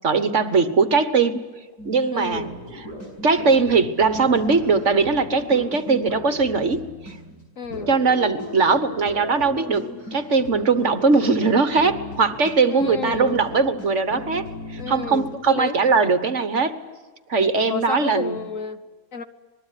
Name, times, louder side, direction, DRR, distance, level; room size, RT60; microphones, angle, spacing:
voice 1, 0.0-1.5 1.8-2.5 2.8-2.9 3.2-7.2 7.9-16.8 17.3-18.4, right 4 dB, 50° right, 11 dB, 1.5 m, -20 dB
sound 1, 1.8-15.3, left 1 dB, 75° left, 6.7 m, -37 dB
voice 2, 2.1-2.5 7.6-7.9 12.7-13.4 14.8-15.8 17.7-18.8 19.1-19.2, left 4 dB, 55° left, 10 dB, 1.6 m, -30 dB
26.0 x 20.5 x 9.9 m, 1.3 s
omnidirectional pair, 1.7 m